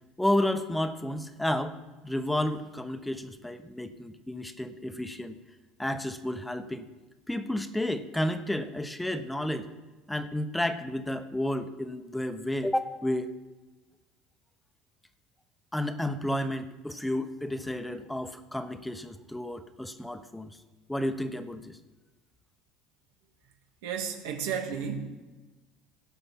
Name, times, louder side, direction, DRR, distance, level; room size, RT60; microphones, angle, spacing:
voice 1, 0.2-1.8 2.0-5.4 5.8-6.9 7.3-9.7 10.1-13.3 15.7-20.5 20.9-21.8, left 1 dB, 5° left, 10 dB, 0.9 m, -31 dB
voice 2, 23.8-25.0, right 7 dB, 85° right, 4 dB, 1.7 m, -32 dB
17.0 x 5.8 x 5.8 m, 1.2 s
supercardioid pair, 100°, 0 cm